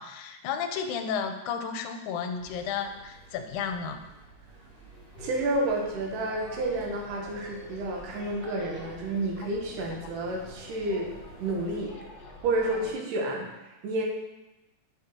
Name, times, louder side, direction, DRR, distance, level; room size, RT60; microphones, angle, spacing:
voice 1, 0.0-4.0 9.4-9.5 10.0-10.1, left 6 dB, 80° left, 6 dB, 2.0 m, -33 dB
sound 1, 2.4-11.8, right 3 dB, 60° right, 3.3 m, -52 dB
sound 2, 5.1-12.9, left 1 dB, 40° left, 1.4 m, -46 dB
voice 2, 5.2-11.1 11.4-11.9 12.4-14.0, right 2 dB, 85° right, 0 dB, 2.6 m, -30 dB
7.7 x 6.3 x 2.9 m, 1.0 s
omnidirectional pair, 3.7 m